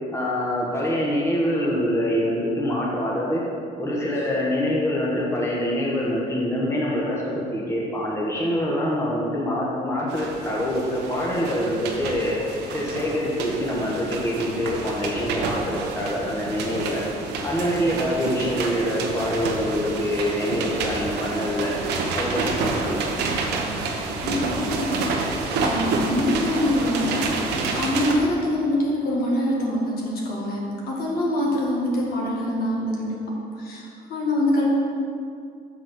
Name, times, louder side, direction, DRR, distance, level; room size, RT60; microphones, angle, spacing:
voice 1, 0.1-3.4 3.8-12.4 12.7-17.0 17.4-21.7 22.1-23.1, equal, 15° left, -4 dB, 1.2 m, -25 dB
sound 1, 10.1-28.1, right 3 dB, 80° right, 1.0 m, -29 dB
voice 2, 24.2-24.9 25.6-27.3 27.8-33.2 33.6-33.8 34.1-34.7, left 1 dB, 65° left, -3 dB, 2.0 m, -24 dB
6.4 x 4.9 x 5.9 m, 2.4 s
cardioid pair, 110°, 17 cm